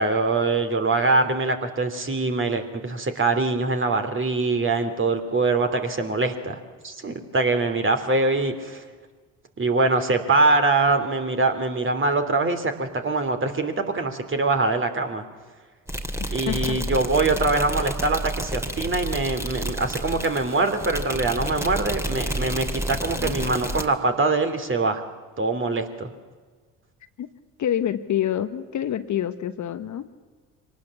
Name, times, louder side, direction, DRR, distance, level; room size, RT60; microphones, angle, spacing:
voice 1, 0.0-6.6 6.8-8.8 9.6-15.2 16.3-25.0 25.4-26.1, right 3 dB, 30° right, 7 dB, 3.0 m, -23 dB
sound 1, 15.9-23.9, right 1 dB, 5° right, 2.6 m, -30 dB
voice 2, 16.2-16.8 23.2-23.4 27.2-27.3 27.6-30.1, left 10 dB, 45° left, 10 dB, 1.3 m, -27 dB
24.5 x 18.5 x 7.3 m, 1.5 s
hypercardioid pair, 60°, 39 cm